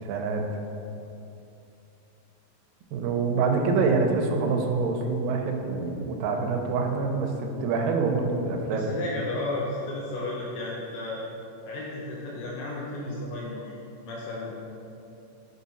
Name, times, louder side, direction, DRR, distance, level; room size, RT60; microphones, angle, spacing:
voice 1, 0.0-0.4 2.9-8.9, right 4 dB, 80° right, 3 dB, 2.3 m, -26 dB
voice 2, 8.7-11.3 11.7-14.5, left 2 dB, 80° left, -3 dB, 2.0 m, -33 dB
6.2 x 4.2 x 4.1 m, 2.7 s
omnidirectional pair, 4.4 m